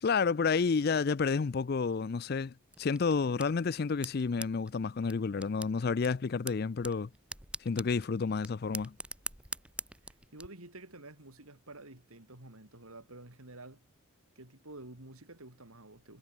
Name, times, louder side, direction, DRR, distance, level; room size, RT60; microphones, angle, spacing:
voice 1, 0.0-7.1 7.6-8.9, left 5 dB, 45° left, 0.4 m, -30 dB
sound 1, 2.7-10.5, right 2 dB, 5° right, 1.3 m, -45 dB
voice 2, 10.3-13.8 14.4-16.2, right 2 dB, 85° right, 4.0 m, -50 dB
head